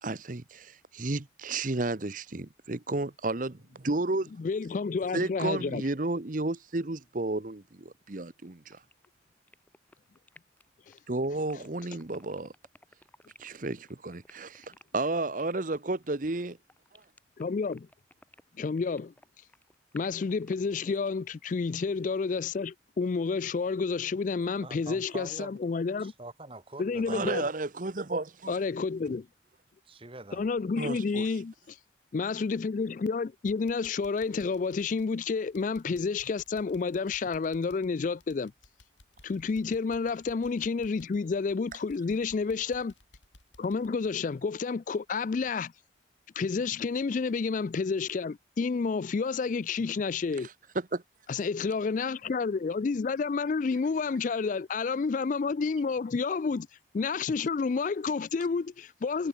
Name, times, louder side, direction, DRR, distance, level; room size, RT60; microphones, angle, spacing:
voice 1, 0.0-4.3 5.1-8.8 11.1-12.5 13.4-16.6 27.1-28.5 30.8-31.3 50.9-51.0, right 2 dB, 45° right, 0.9 m, -32 dB
voice 2, 4.4-5.8 10.9-11.0 17.4-17.9 18.6-19.1 19.9-26.1 26.8-27.5 28.5-29.3 30.3-31.8 32.1-38.5 39.2-42.9 43.6-45.7 46.4-50.5 51.3-56.7 56.9-59.3, left 4 dB, 40° left, 0.3 m, -30 dB
sound 1, 8.2-20.6, left 2 dB, 10° left, 2.6 m, -57 dB
voice 3, 24.6-25.6 26.0-27.5 29.8-30.5, right 2 dB, 30° right, 1.5 m, -44 dB
sound 2, 32.8-33.1 33.5-45.1 45.4-45.5 46.0-46.1, left 2 dB, 75° left, 7.9 m, -59 dB
head